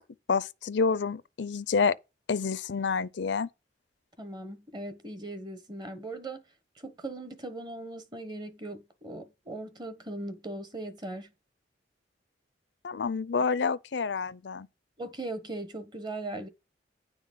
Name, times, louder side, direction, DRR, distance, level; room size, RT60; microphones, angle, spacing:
voice 1, 0.3-2.0 2.3-3.5 12.8-14.7, left 5 dB, 70° left, 0.5 m, -28 dB
voice 2, 4.2-6.4 6.8-11.3 15.0-16.5, right 2 dB, 25° right, 1.1 m, -39 dB
9.9 x 3.9 x 7.3 m
head